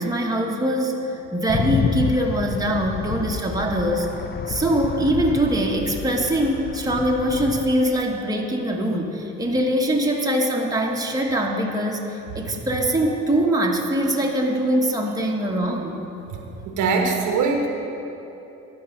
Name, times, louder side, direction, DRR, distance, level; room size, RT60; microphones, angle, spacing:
voice 1, 0.0-4.1 4.5-16.0, right 1 dB, 10° right, 0 dB, 1.2 m, -23 dB
sound 1, 1.5-7.8, left 6 dB, 35° left, 0.5 m, -29 dB
voice 2, 16.6-17.7, right 4 dB, 90° right, 3 dB, 1.1 m, -22 dB
12.0 x 4.8 x 7.0 m, 3.0 s
cardioid pair, 90°, 30 cm